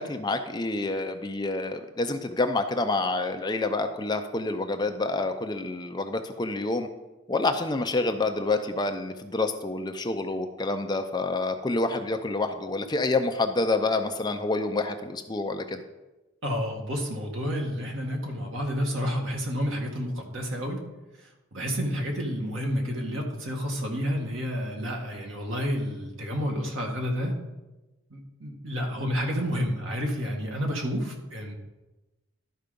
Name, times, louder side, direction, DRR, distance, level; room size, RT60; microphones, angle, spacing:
voice 1, 0.0-6.9 7.3-15.8, left 2 dB, 20° left, 7 dB, 0.5 m, -28 dB
voice 2, 16.4-20.8 21.5-27.3 28.1-31.5, equal, 75° right, 1 dB, 1.8 m, -30 dB
12.0 x 4.7 x 5.2 m, 1.1 s
head